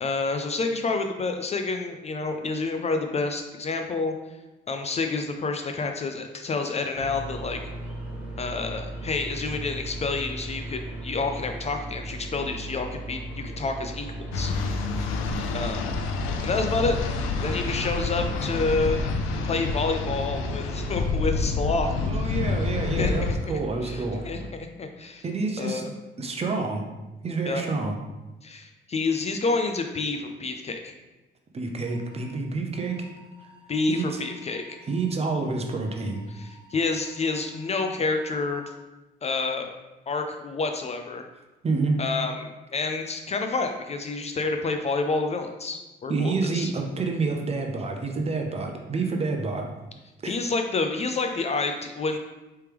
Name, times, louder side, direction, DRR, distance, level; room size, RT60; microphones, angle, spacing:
voice 1, 0.0-4.1 4.7-7.6 8.4-14.5 15.5-16.0 16.4-17.0 17.4-19.0 19.5-21.9 22.1-22.3 23.0-25.2 25.6-25.9 27.5-27.6 28.4-30.9 33.7-34.8 36.3-38.6 39.2-39.7 40.1-41.2 42.0-46.7 50.2-52.2, left 3 dB, 35° left, 5 dB, 0.4 m, -28 dB
sound 1, 6.9-24.5, right 2 dB, 5° right, 0.9 m, -37 dB
sound 2, 14.3-23.4, left 4 dB, 85° left, 0.5 m, -28 dB
voice 2, 22.1-24.2 25.2-25.8 26.2-26.8 27.2-27.9 31.5-33.1 33.9-34.2 34.9-36.2 41.6-42.0 46.1-49.7 50.2-50.4, right 3 dB, 30° right, 2 dB, 0.7 m, -28 dB
sound 3, 31.8-32.2 32.7-35.0 35.5-38.7, equal, 80° right, 1.0 m, -54 dB
4.5 x 3.3 x 3.4 m, 1.1 s
cardioid pair, 100°, 20 cm